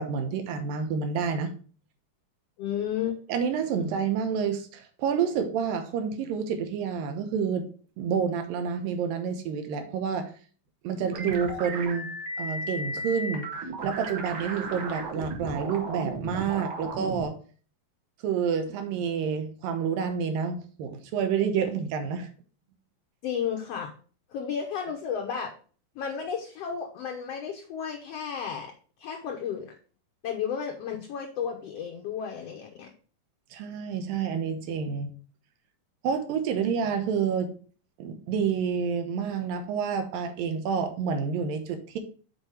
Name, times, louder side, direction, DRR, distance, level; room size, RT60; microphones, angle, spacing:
voice 1, 0.0-1.5 3.3-7.7 8.0-10.3 10.8-12.1 12.4-13.5 13.8-17.3 18.2-22.3 33.5-35.1 36.0-37.5 38.0-42.0, right 6 dB, 85° right, 7 dB, 2.7 m, -29 dB
voice 2, 2.6-3.2 3.8-3.9 23.2-23.9 24.3-25.5 25.9-28.7 29.0-29.7 30.2-32.9, left 7 dB, 75° left, 2 dB, 1.5 m, -33 dB
sound 1, 11.1-17.2, right 2 dB, 60° right, 1.4 m, -35 dB
7.1 x 4.5 x 4.8 m, 0.40 s
omnidirectional pair, 3.9 m